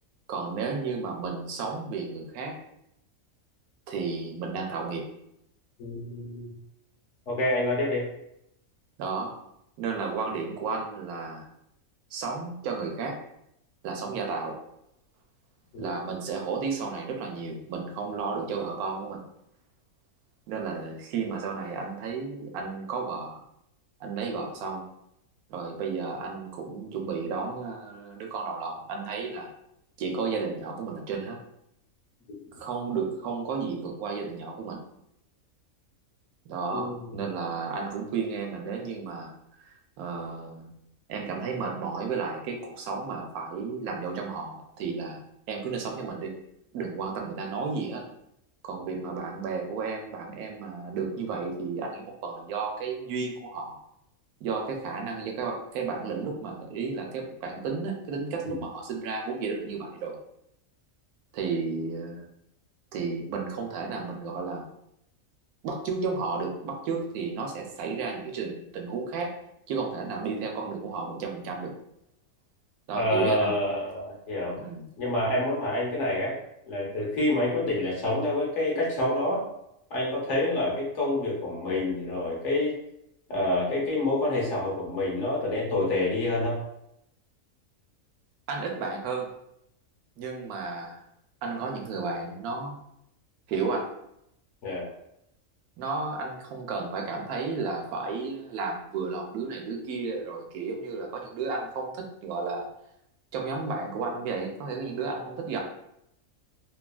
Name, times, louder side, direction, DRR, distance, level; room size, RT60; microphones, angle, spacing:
voice 1, 0.3-2.6 3.9-5.0 9.0-9.3 9.8-11.5 12.1-13.2 13.8-14.6 15.8-19.2 20.5-23.4 24.0-24.9 25.5-29.5 30.0-31.4 32.5-34.8 36.5-39.3 39.6-39.7 40.0-40.7 41.1-45.2 45.5-46.3 46.7-48.1 48.6-53.8 54.4-60.2 61.3-62.2 62.9-64.6 65.6-69.4 69.7-71.7 72.9-73.6 74.6-74.9 88.5-89.3 90.2-91.0 91.4-92.8 93.5-93.9 95.8-102.7 103.3-105.6, right 4 dB, 90° right, 2 dB, 1.1 m, -33 dB
voice 2, 5.8-6.6 7.3-8.0 15.7-15.9 32.3-32.4 36.7-37.1 58.4-58.6 72.9-74.6 75.0-76.3 76.7-79.4 79.9-82.8 83.3-86.6 94.6-94.9, left 1 dB, 60° left, -3 dB, 1.1 m, -27 dB
2.9 x 2.3 x 2.3 m, 0.79 s
omnidirectional pair, 1.5 m